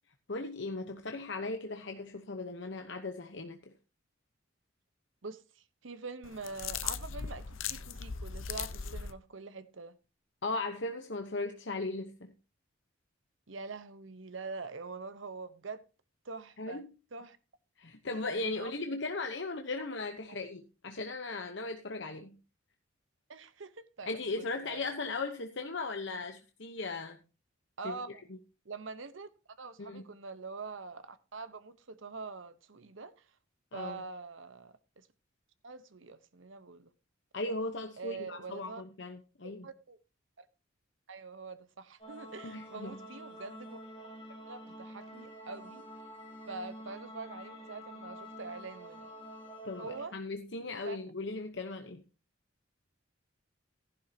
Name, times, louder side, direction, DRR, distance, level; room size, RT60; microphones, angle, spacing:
voice 1, 0.3-3.7 10.4-12.3 16.6-16.9 17.8-22.4 24.1-27.2 27.8-28.0 29.8-30.0 33.7-34.0 37.3-39.6 42.4-43.0 49.6-52.0, left 3 dB, 60° left, 1.0 m, -37 dB
voice 2, 5.2-10.0 13.5-15.8 16.2-16.8 17.1-17.4 18.1-18.7 20.3-20.4 23.3-24.9 27.8-28.2 28.6-29.3 29.6-33.3 33.7-35.1 35.6-36.9 38.0-38.8 39.4-40.0 40.4-40.5 41.1-43.8 44.3-45.9 46.5-49.1 49.8-50.2 50.6-51.0, right 4 dB, 70° right, 1.0 m, -45 dB
sound 1, 6.2-9.1, left 7 dB, 80° left, 0.7 m, -38 dB
sound 2, 42.0-50.1, equal, 30° left, 2.6 m, -48 dB
15.0 x 11.0 x 2.8 m
head